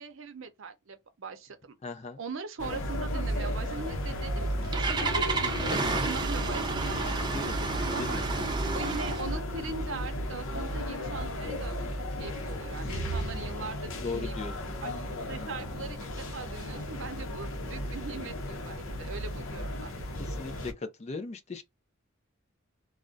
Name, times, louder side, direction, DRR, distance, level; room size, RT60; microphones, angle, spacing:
voice 1, 0.0-1.8 2.2-5.7 6.0-8.2 8.7-11.7 12.2-14.3 14.8-19.9, right 4 dB, 70° right, 0.6 m, -41 dB
voice 2, 1.8-2.2 7.2-7.6 7.9-8.2 14.0-14.5 20.2-21.6, left 3 dB, 30° left, 0.4 m, -38 dB
sound 1, 2.6-20.7, equal, 70° left, 0.7 m, -34 dB
Engine starting, 4.2-9.4, right 3 dB, 20° right, 0.5 m, -31 dB
2.4 x 2.1 x 3.7 m
head